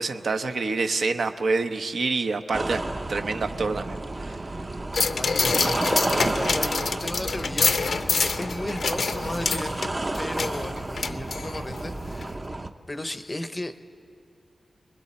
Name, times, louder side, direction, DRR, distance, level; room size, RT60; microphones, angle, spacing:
voice 1, 0.0-4.4, right 3 dB, 65° right, 7 dB, 0.8 m, -27 dB
sound 1, 2.5-12.7, right 2 dB, 25° right, 0.6 m, -31 dB
sound 2, 4.9-11.8 12.2-12.3, left 4 dB, 60° left, 0.6 m, -26 dB
voice 2, 5.2-12.4 12.9-13.9, left 1 dB, 20° left, 9 dB, 0.7 m, -35 dB
29.5 x 21.0 x 4.3 m, 2.5 s
wide cardioid pair, 160°, 0 cm